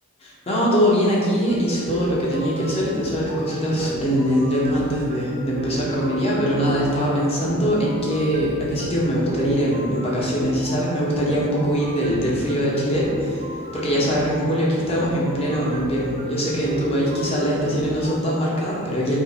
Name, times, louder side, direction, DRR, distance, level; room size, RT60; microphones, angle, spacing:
voice 1, 0.2-13.5 13.7-19.2, equal, 25° left, -5 dB, 0.6 m, -22 dB
sound 1, 1.5-18.1, equal, 30° right, 0.4 m, -34 dB
2.8 x 2.5 x 3.9 m, 2.2 s
head